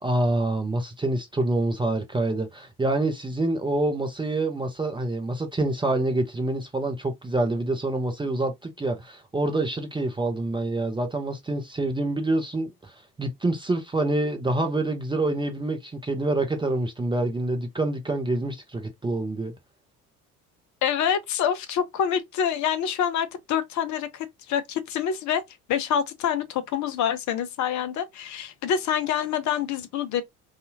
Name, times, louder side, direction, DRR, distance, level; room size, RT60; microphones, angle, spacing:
voice 1, 0.0-19.5, right 2 dB, 10° right, 0.5 m, -26 dB
voice 2, 20.8-25.4 25.7-30.2, left 8 dB, 40° left, 0.5 m, -26 dB
2.7 x 2.4 x 2.6 m
figure-of-eight pair, 60°, 45 cm